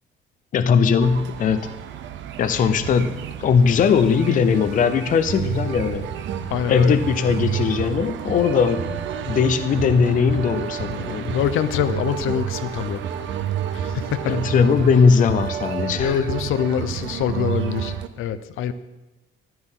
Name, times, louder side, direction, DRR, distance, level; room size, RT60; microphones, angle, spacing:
voice 1, 0.5-1.7 2.4-3.1 3.4-6.1 6.7-11.4 14.2-16.2, left 6 dB, 40° left, 10 dB, 0.6 m, -19 dB
sound 1, 1.0-18.1, right 9 dB, 65° right, 0.8 m, -30 dB
voice 2, 6.5-7.0 11.3-13.0 13.7-14.3 16.0-18.7, left 9 dB, 75° left, 11 dB, 0.7 m, -24 dB
14.0 x 12.0 x 3.8 m, 1.1 s
cardioid pair, 180°, 21 cm